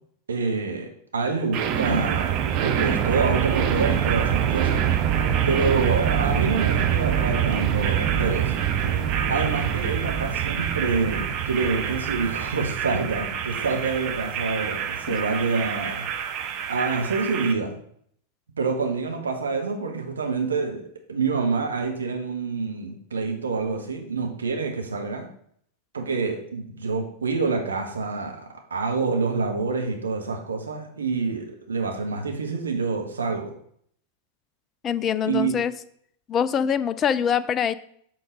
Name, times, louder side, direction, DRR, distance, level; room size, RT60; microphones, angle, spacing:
voice 1, 0.3-4.8 5.4-8.6 9.3-16.1 16.7-17.8 18.6-20.8 21.1-25.3 25.9-33.5 35.3-35.5, right 4 dB, 70° right, 3 dB, 1.3 m, -27 dB
sound 1, 1.5-17.5, right 9 dB, 40° right, 0.7 m, -25 dB
sound 2, 4.9-9.9, left 7 dB, 55° left, 0.8 m, -41 dB
voice 2, 34.8-35.7 36.3-37.7, left 8 dB, 25° left, 15 dB, 0.4 m, -24 dB
7.8 x 3.9 x 5.0 m, 0.65 s
figure-of-eight pair, 90°, 0 cm